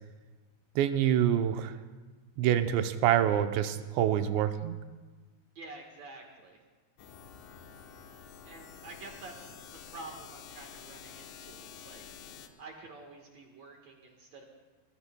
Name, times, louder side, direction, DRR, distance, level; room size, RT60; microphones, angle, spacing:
voice 1, 0.8-1.7 2.4-4.8, right 10 dB, 80° right, 8 dB, 3.0 m, -26 dB
voice 2, 5.6-6.6 8.5-12.3 12.6-14.4, right 2 dB, 65° right, 1 dB, 1.8 m, -48 dB
sound 1, 7.0-12.5, left 7 dB, 80° left, 3.2 m, -49 dB
24.0 x 23.0 x 2.2 m, 1.3 s
omnidirectional pair, 5.1 m